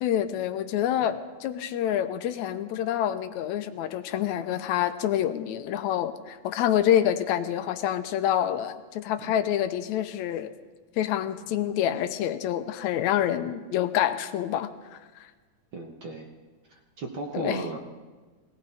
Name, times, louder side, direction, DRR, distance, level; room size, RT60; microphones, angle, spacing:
voice 1, 0.0-10.5 11.0-15.0 17.3-17.6, left 10 dB, 85° left, 10 dB, 2.0 m, -27 dB
voice 2, 15.7-16.3 17.0-17.8, right 2 dB, 55° right, 2 dB, 1.4 m, -35 dB
19.5 x 17.0 x 4.2 m, 1.3 s
omnidirectional pair, 3.3 m